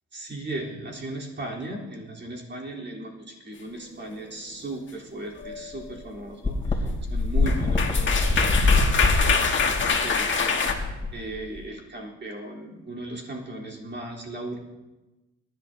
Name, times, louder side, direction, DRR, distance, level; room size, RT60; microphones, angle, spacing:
voice 1, 0.1-14.6, right 2 dB, 35° right, -3 dB, 3.7 m, -37 dB
sound 1, 5.4-5.7 7.2-7.3 7.5-10.7, left 5 dB, 40° left, 1.8 m, -24 dB
sound 2, 5.4-5.5 5.8-5.9 6.4-11.6, left 3 dB, 15° left, 3.0 m, -24 dB
24.5 x 11.5 x 2.8 m, 1.1 s
cardioid pair, 90°, 30 cm